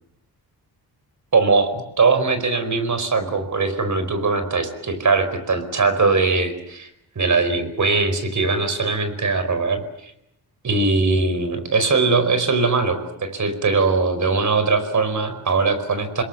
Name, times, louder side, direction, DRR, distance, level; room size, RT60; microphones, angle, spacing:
voice 1, 1.3-6.9 7.1-10.1 10.6-16.2, right 4 dB, 50° right, 10 dB, 4.9 m, -21 dB
28.0 x 21.5 x 8.1 m, 0.77 s
cardioid pair, 95°, 39 cm